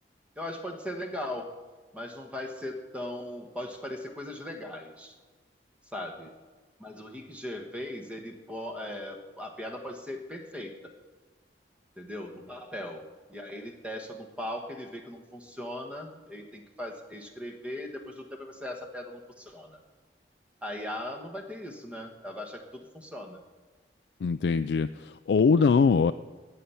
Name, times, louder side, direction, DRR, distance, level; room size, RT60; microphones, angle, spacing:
voice 1, 0.4-1.5 1.9-5.1 5.9-6.3 6.8-10.9 12.0-19.8 20.6-23.4, left 1 dB, 5° right, 3 dB, 1.2 m, -39 dB
voice 2, 24.2-26.1, left 5 dB, 65° left, 9 dB, 0.3 m, -22 dB
17.0 x 5.7 x 9.2 m, 1.3 s
head